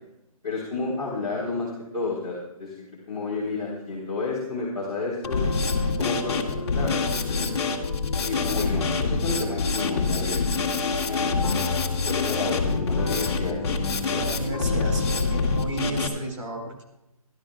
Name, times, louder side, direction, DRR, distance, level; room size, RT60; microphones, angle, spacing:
voice 1, 0.4-5.4 6.0-7.5 8.2-10.4 11.1-11.6 12.0-13.8, left 3 dB, ahead, -16 dB, 0.4 m, -31 dB
Drum kit, 5.2-16.1, left 4 dB, 45° left, 2.0 m, -26 dB
voice 2, 14.1-16.8, right 2 dB, 55° right, 2 dB, 4.2 m, -32 dB
25.5 x 12.5 x 2.3 m, 0.91 s
hypercardioid pair, 180°, 19 cm